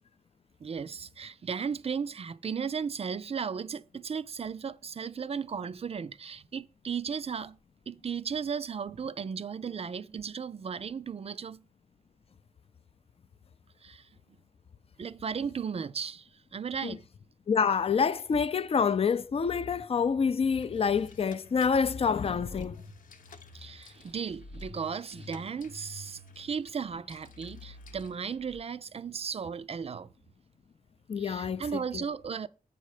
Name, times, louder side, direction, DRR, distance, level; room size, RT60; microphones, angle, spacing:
voice 1, 0.6-7.6 7.9-11.6 13.8-14.1 15.0-17.0 23.5-30.1 31.2-32.5, right 6 dB, 45° right, 0.4 m, -35 dB
voice 2, 17.5-22.8 31.1-32.0, left 6 dB, 45° left, 0.4 m, -27 dB
sound 1, 20.6-28.6, left 2 dB, 75° left, 0.9 m, -49 dB
8.2 x 5.4 x 4.8 m
wide cardioid pair, 100°, 14 cm